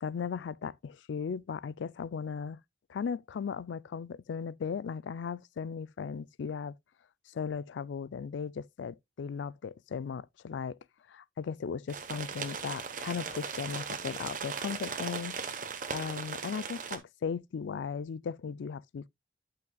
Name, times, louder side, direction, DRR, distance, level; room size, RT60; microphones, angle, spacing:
voice 1, 0.0-2.6 2.9-6.8 7.3-10.8 11.1-15.4 15.9-19.1, left 6 dB, 80° left, 0.4 m, -37 dB
sound 1, 11.9-17.0, right 5 dB, 45° right, 1.0 m, -38 dB
10.5 x 5.9 x 2.3 m
head